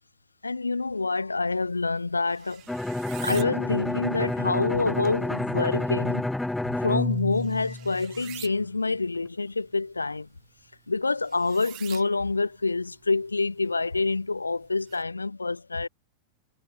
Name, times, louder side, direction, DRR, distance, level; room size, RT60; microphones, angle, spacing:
voice 1, 0.4-2.6 3.2-6.3 6.8-10.3 10.9-15.9, left 3 dB, 80° left, 1.1 m, -27 dB
sound 1, 1.6-15.0, right 21 dB, 40° right, 6.2 m, -49 dB
Bowed string instrument, 2.7-8.3, left 2 dB, 5° left, 0.4 m, -29 dB
figure-of-eight pair, 90°, 0 cm